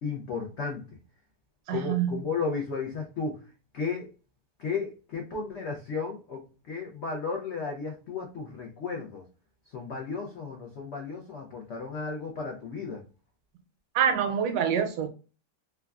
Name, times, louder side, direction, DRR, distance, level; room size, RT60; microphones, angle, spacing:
voice 1, 0.0-0.9 1.7-3.4 3.7-4.1 4.6-9.2 9.7-13.0, left 4 dB, 80° left, 0.6 m, -34 dB
voice 2, 1.7-2.2 13.9-15.1, right 8 dB, 85° right, 1.2 m, -26 dB
3.3 x 2.2 x 2.3 m
omnidirectional pair, 1.8 m